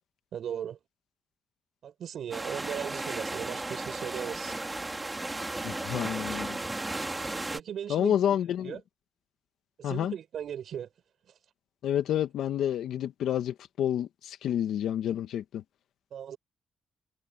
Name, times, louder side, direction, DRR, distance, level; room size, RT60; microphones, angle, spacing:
voice 1, 0.3-0.8 1.8-4.5 7.5-8.2 8.6-8.8 9.8-10.9 16.1-16.4, right 9 dB, 65° right, 6.5 m, -37 dB
sound 1, 2.3-7.6, right 2 dB, 15° right, 3.6 m, -35 dB
voice 2, 5.6-6.6 7.9-8.8 9.8-10.1 11.8-15.6, left 10 dB, 80° left, 1.7 m, -29 dB
cardioid pair, 95°, 0 cm